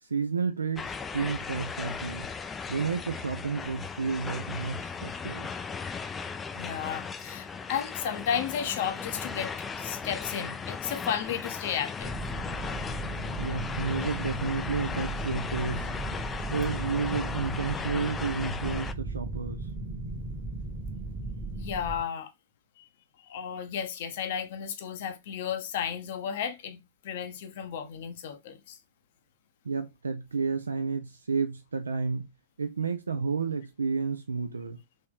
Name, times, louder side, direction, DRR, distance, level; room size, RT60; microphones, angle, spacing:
voice 1, 0.0-2.3 2.7-5.5 13.4-15.9 16.5-19.7 29.6-32.3 32.6-34.8, right 5 dB, 75° right, 0.4 m, -31 dB
sound 1, 0.8-18.9, left 5 dB, 15° left, 0.3 m, -37 dB
voice 2, 6.5-12.1 21.6-22.3 22.8-22.9 23.2-28.8, left 8 dB, 50° left, 0.6 m, -33 dB
sound 2, 12.0-22.0, right 2 dB, 10° right, 1.0 m, -36 dB
3.1 x 2.9 x 3.7 m
figure-of-eight pair, 105°, 0 cm